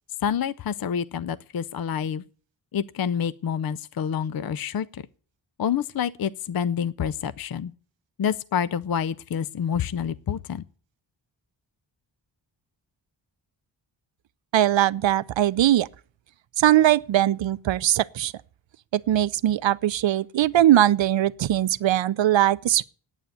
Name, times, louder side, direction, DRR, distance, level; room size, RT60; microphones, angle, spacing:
voice 1, 0.2-2.2 2.7-5.0 5.6-7.7 8.2-10.6, left 8 dB, 50° left, 0.5 m, -28 dB
voice 2, 14.5-15.9 16.6-18.3 18.9-22.8, right 12 dB, 75° right, 0.6 m, -20 dB
9.2 x 9.0 x 9.3 m
wide cardioid pair, 115°, 45 cm